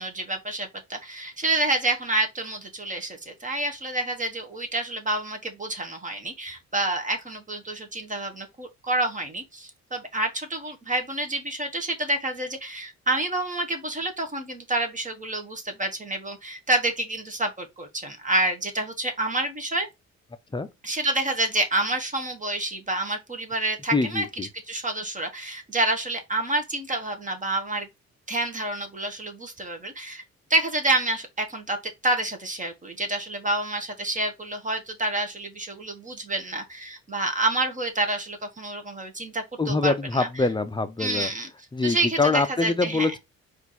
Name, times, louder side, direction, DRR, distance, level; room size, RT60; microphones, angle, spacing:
voice 1, 0.0-19.9 20.8-24.3 24.7-27.9 28.3-30.2 30.5-40.5 41.0-41.5 41.8-43.1, right 2 dB, 25° right, 1.0 m, -28 dB
voice 2, 23.9-24.5 39.6-41.3 41.7-43.2, left 3 dB, 15° left, 0.5 m, -24 dB
4.4 x 2.5 x 4.0 m
cardioid pair, 90°, 30 cm